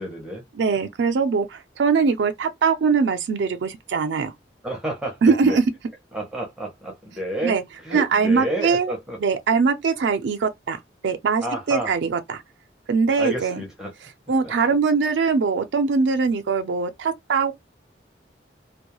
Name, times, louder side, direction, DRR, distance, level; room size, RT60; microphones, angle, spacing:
voice 1, 0.0-0.4 4.6-5.6 6.1-7.6 7.8-9.2 11.4-11.9 13.2-13.9 14.4-14.5, right 1 dB, 5° right, 0.6 m, -30 dB
voice 2, 0.5-4.3 5.2-5.6 7.4-7.6 7.9-8.9 9.2-10.8 11.0-12.4 12.9-13.6 14.3-17.5, right 5 dB, 70° right, 0.4 m, -21 dB
2.2 x 2.1 x 2.9 m
head